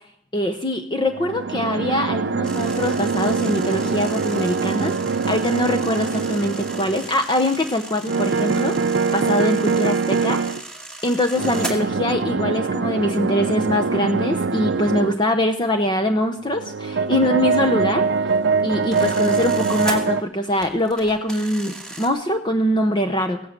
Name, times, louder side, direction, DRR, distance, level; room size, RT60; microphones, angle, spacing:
voice 1, 0.3-10.4 11.0-18.0 18.6-23.4, left 1 dB, 25° left, 6 dB, 0.9 m, -23 dB
sound 1, 1.1-7.2 8.1-10.6 11.4-15.2 16.5-20.2, right 4 dB, 70° right, 0.5 m, -23 dB
sound 2, 2.4-11.7 15.5-15.6 15.9-16.1 17.8-20.0 20.6-22.1, right 2 dB, 5° left, 2.1 m, -37 dB
16.5 x 11.0 x 7.4 m, 0.71 s
head